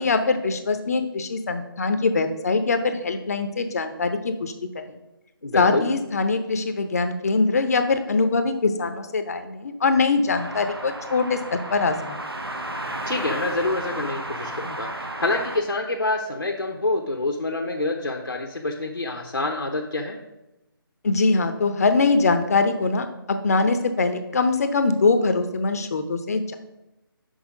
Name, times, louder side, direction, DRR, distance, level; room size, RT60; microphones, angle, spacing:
voice 1, 0.0-5.0 5.5-12.3 21.0-26.6, left 3 dB, 40° left, 8 dB, 0.7 m, -23 dB
voice 2, 5.4-5.9 13.1-20.2, left 2 dB, 80° left, 0 dB, 1.0 m, -27 dB
sound 1, 10.3-15.6, right 1 dB, 80° right, 1.1 m, -33 dB
6.4 x 4.9 x 4.9 m, 0.95 s
figure-of-eight pair, 150°, 12 cm